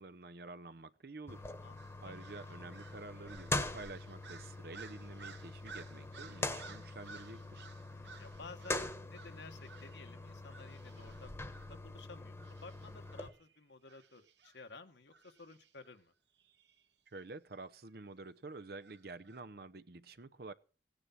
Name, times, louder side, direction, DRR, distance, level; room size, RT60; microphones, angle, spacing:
voice 1, 0.0-1.4 2.0-7.7 17.1-20.5, right 3 dB, 55° right, 0.8 m, -49 dB
sound 1, 1.3-13.3, left 2 dB, 15° left, 1.3 m, -43 dB
voice 2, 1.6-2.1 7.9-16.1, left 3 dB, 75° left, 1.5 m, -54 dB
sound 2, 1.8-10.1 10.5-11.8 12.4-14.6 15.1-15.9 16.4-16.8 18.8-19.4, right 5 dB, 75° right, 2.1 m, -57 dB
17.0 x 9.8 x 5.8 m
head